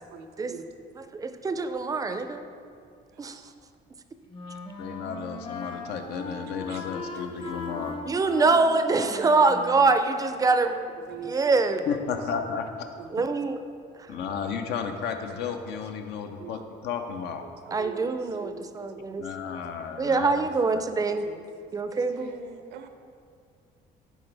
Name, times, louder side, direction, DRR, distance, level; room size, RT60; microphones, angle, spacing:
voice 1, 0.1-0.7 3.1-3.4 6.5-6.9 9.1-9.6 11.1-12.0 12.4-12.6 13.0-13.4 15.4-15.6 16.4-16.6 17.4-18.6 20.6-20.7 21.2-21.4 21.9-22.9, right 6 dB, 80° right, 8 dB, 0.6 m, -43 dB
voice 2, 1.2-2.4 3.2-3.4 8.1-10.9 11.2-11.8 13.1-13.6 17.7-19.3 20.0-21.3 21.7-22.3, right 3 dB, 20° right, 9 dB, 0.4 m, -24 dB
Wind instrument woodwind instrument, 4.3-10.0, left 3 dB, 30° left, 0.7 m, -39 dB
voice 3, 4.8-8.0 11.9-12.7 14.1-17.5 19.2-20.5 20.7-20.8, left 6 dB, 80° left, 6 dB, 0.6 m, -33 dB
10.0 x 4.0 x 3.3 m, 2.3 s
cardioid pair, 110°, 17 cm